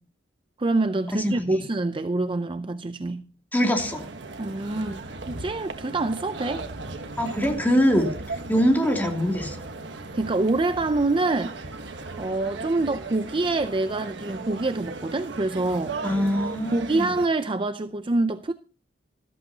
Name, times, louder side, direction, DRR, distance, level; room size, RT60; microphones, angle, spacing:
voice 1, 0.6-3.2 4.4-6.6 10.1-16.0 16.7-18.5, right 2 dB, 30° right, 0.5 m, -26 dB
voice 2, 1.2-1.6 3.5-4.0 7.2-8.1 8.5-9.6 16.0-17.1, equal, 10° left, 2.7 m, -23 dB
sound 1, 3.8-17.3, right 3 dB, 70° right, 1.3 m, -37 dB
14.0 x 14.0 x 2.8 m
head